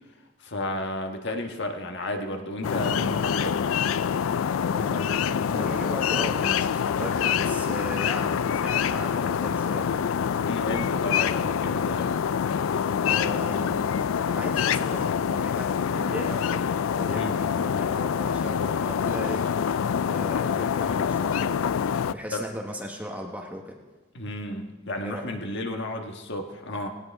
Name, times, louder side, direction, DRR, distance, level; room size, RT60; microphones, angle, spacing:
voice 1, 0.4-3.6 10.4-12.1 17.2-17.4 22.3-22.4 24.1-26.9, left 1 dB, 60° left, 4 dB, 1.6 m, -32 dB
sound 1, 2.6-22.1, left 7 dB, 75° left, 0.4 m, -26 dB
voice 2, 4.7-10.2 13.0-13.8 14.3-16.7 17.0-19.4 20.1-21.7 22.1-23.8 25.0-25.3, equal, 10° right, 1 dB, 1.1 m, -37 dB
18.0 x 17.5 x 3.5 m, 1.2 s
head